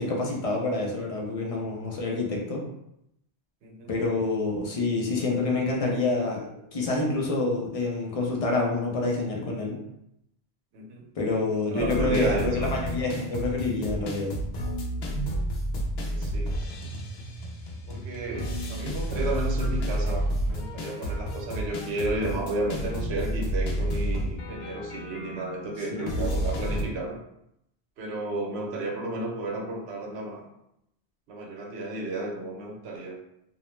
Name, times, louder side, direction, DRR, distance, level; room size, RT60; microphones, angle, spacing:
voice 1, 0.0-2.6 3.9-6.4 6.7-9.8 11.2-14.3 25.8-26.4, left 3 dB, 45° left, -1 dB, 0.5 m, -27 dB
voice 2, 3.6-3.9 10.7-11.0 11.7-12.8 16.0-16.5 17.9-27.2 28.0-30.5 31.3-33.2, right 2 dB, 80° right, 0 dB, 0.8 m, -33 dB
sound 1, 11.8-26.8, right 1 dB, 70° left, 0.8 m, -31 dB
2.4 x 2.0 x 3.0 m, 0.79 s
omnidirectional pair, 1.1 m